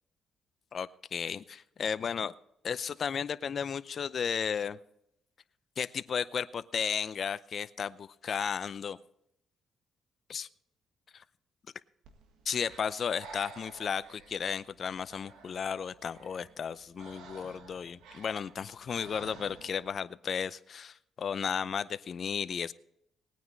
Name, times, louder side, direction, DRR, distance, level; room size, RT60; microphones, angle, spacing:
voice 1, 0.7-2.3 2.6-4.8 5.8-9.0 10.3-10.5 11.1-11.2 12.5-22.7, left 7 dB, 50° left, 14 dB, 0.6 m, -34 dB
Breathing, 12.0-19.9, right 4 dB, 90° right, 1.7 m, -53 dB
19.5 x 9.3 x 4.0 m, 0.78 s
cardioid pair, 90°, 0 cm